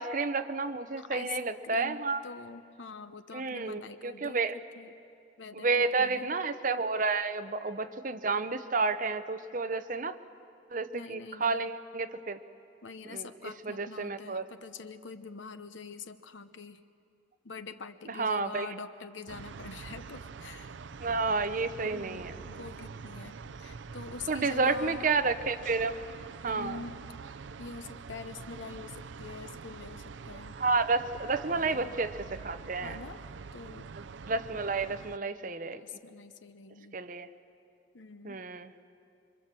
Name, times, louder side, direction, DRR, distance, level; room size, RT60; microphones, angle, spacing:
voice 1, 0.0-2.2 3.3-4.5 5.5-10.2 10.7-12.4 13.0-14.5 18.1-18.7 21.0-22.4 24.3-26.0 26.4-26.8 30.6-33.0 34.0-35.8 36.9-37.3 38.2-38.7, right 4 dB, 45° right, 10 dB, 0.8 m, -31 dB
voice 2, 1.0-1.4 1.6-4.5 4.8-4.9 5.4-6.3 10.9-11.7 12.8-16.8 17.4-20.8 21.8-25.1 26.5-27.0 27.6-30.6 31.5-32.1 32.7-33.2 33.5-33.9 35.7-37.0 37.9-38.4, left 4 dB, 75° left, 11 dB, 0.9 m, -45 dB
sound 1, 19.3-35.2, right 5 dB, 70° right, 0.5 m, -45 dB
26.5 x 24.0 x 7.6 m, 2.5 s
head